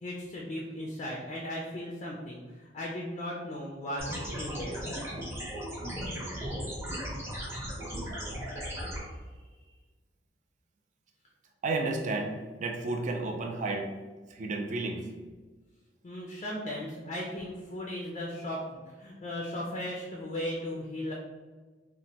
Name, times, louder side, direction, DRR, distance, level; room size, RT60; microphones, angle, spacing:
voice 1, 0.0-4.8 7.0-7.2 7.9-8.2 16.0-21.1, left 1 dB, 40° left, -2 dB, 0.4 m, -37 dB
sound 1, 4.0-9.0, equal, 15° right, 0.7 m, -36 dB
voice 2, 11.6-12.3 12.6-13.9 14.3-15.0, right 3 dB, 45° right, 3 dB, 0.4 m, -31 dB
3.0 x 2.0 x 2.8 m, 1.3 s
head